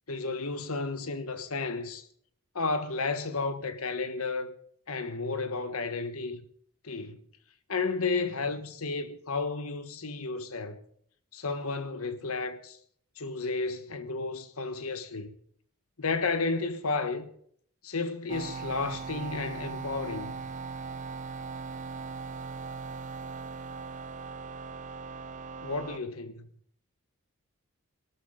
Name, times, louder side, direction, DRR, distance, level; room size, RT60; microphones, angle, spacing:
voice 1, 0.1-2.1 2.5-4.5 4.9-6.5 6.8-7.2 7.7-10.8 11.3-12.8 13.2-15.3 16.0-17.3 17.8-20.3 25.6-26.5, left 3 dB, 70° left, 1.3 m, -32 dB
sound 1, 18.3-26.0, right 4 dB, 35° right, 0.7 m, -39 dB
18.0 x 13.0 x 3.8 m
head